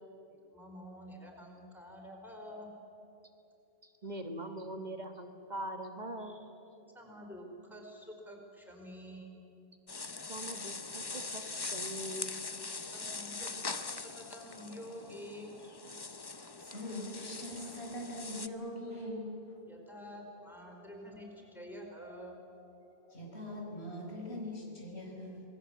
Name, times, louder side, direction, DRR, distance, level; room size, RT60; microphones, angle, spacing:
voice 1, 0.3-2.7 6.9-9.3 12.8-15.5 19.7-22.4, equal, ahead, 1 dB, 4.7 m, -48 dB
voice 2, 3.8-6.4 10.3-12.5, right 1 dB, 45° right, 5 dB, 1.5 m, -42 dB
sound 1, 9.9-18.5, left 3 dB, 25° left, 0.7 m, -42 dB
voice 3, 16.6-19.3 20.7-20.9 23.0-25.4, left 1 dB, 90° left, 0 dB, 4.9 m, -42 dB
27.5 x 20.0 x 8.3 m, 2.8 s
omnidirectional pair, 1.1 m